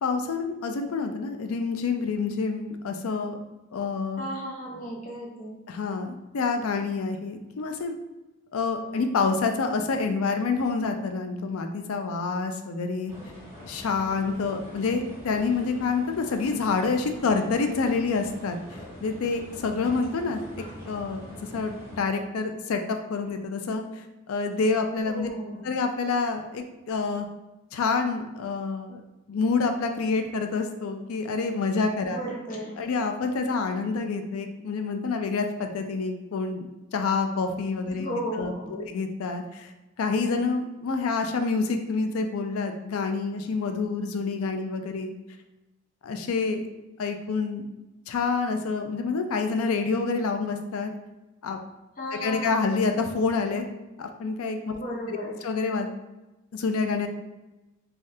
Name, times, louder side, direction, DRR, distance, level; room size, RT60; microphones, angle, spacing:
voice 1, 0.0-3.4 3.7-4.2 5.7-8.0 8.5-13.1 13.6-20.4 20.8-21.2 21.5-25.3 25.6-27.3 27.7-29.0 29.3-32.2 32.8-36.7 36.9-38.1 38.3-39.7 40.0-45.1 46.0-46.6 47.0-47.6 48.1-50.9 51.4-51.6 52.1-53.6 54.0-54.7 55.1-55.9 56.5-57.1, left 4 dB, 85° left, 6 dB, 0.4 m, -27 dB
voice 2, 4.2-5.6 25.1-25.7 32.1-32.8 37.9-38.9 52.0-52.7 54.7-55.4, equal, 40° left, -2 dB, 0.6 m, -35 dB
sound 1, 13.1-22.0, equal, 10° right, 0.7 m, -44 dB
3.2 x 2.3 x 2.7 m, 1.0 s
head